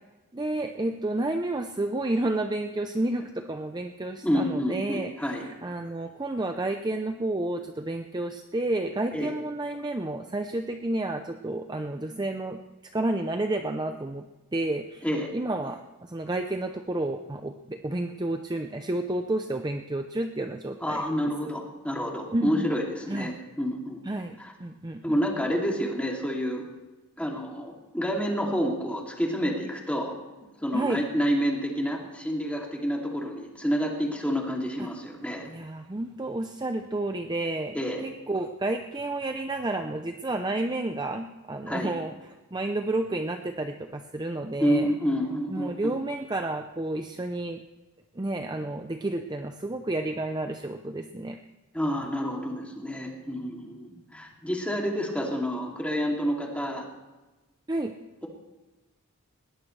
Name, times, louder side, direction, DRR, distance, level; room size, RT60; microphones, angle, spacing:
voice 1, 0.3-12.6 12.9-15.0 15.3-21.0 22.3-22.7 23.1-23.4 24.1-25.2 30.7-31.0 34.8-34.9 35.4-44.9 45.5-47.6 48.1-51.4 57.7-57.9, right 2 dB, 20° right, 6 dB, 0.6 m, -31 dB
voice 2, 4.2-5.4 9.1-9.3 15.0-15.3 20.8-24.0 24.4-24.5 25.0-26.6 27.2-30.1 30.6-35.5 37.7-38.0 41.7-41.9 44.6-46.0 51.7-56.9, equal, 5° left, -1 dB, 2.7 m, -29 dB
20.5 x 18.0 x 3.3 m, 1.1 s
head